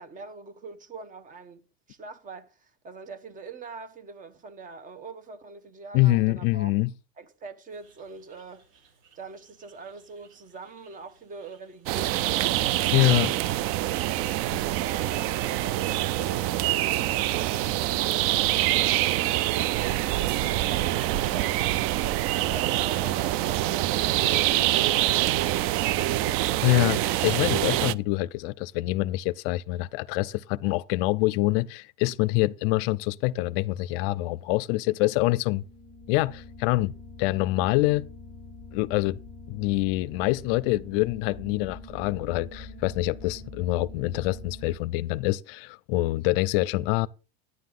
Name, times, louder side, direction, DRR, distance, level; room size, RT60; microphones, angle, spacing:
voice 1, 0.0-6.7 7.2-8.6 9.2-13.3 13.8-20.0 20.7-26.9, right 4 dB, 25° right, 1.0 m, -43 dB
voice 2, 5.9-6.9 12.9-13.3 26.6-35.6 36.1-36.9 37.2-38.1 38.7-39.2 39.5-47.1, left 18 dB, 70° left, 0.5 m, -25 dB
sound 1, 7.7-20.4, right 5 dB, 65° right, 5.9 m, -63 dB
sound 2, 11.9-27.9, right 15 dB, 50° right, 0.4 m, -25 dB
sound 3, 35.5-44.8, left 2 dB, ahead, 0.9 m, -44 dB
9.7 x 9.5 x 3.7 m
supercardioid pair, 135°, 30 cm